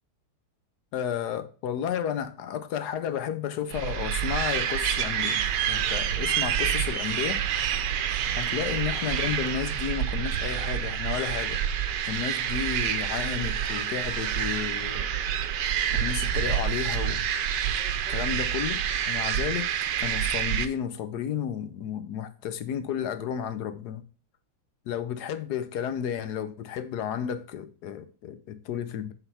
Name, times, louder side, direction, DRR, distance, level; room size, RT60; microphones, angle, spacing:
voice 1, 0.9-7.4 8.3-11.6 12.1-15.1 15.9-17.2 18.1-19.7 20.0-24.0 24.9-29.1, left 9 dB, 65° left, 1.1 m, -32 dB
sound 1, 3.7-20.7, right 9 dB, 65° right, 1.2 m, -28 dB
7.9 x 4.0 x 5.5 m
omnidirectional pair, 2.3 m